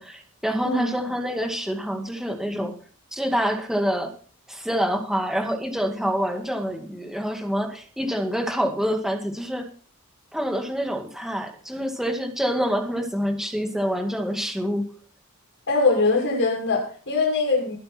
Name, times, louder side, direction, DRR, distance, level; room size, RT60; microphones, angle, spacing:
voice 1, 0.0-2.7 3.1-4.1 4.5-9.7 10.3-14.9, equal, ahead, 4 dB, 2.1 m, -26 dB
voice 2, 15.7-17.8, left 3 dB, 55° left, 0 dB, 6.6 m, -22 dB
21.0 x 8.7 x 4.5 m, 0.41 s
head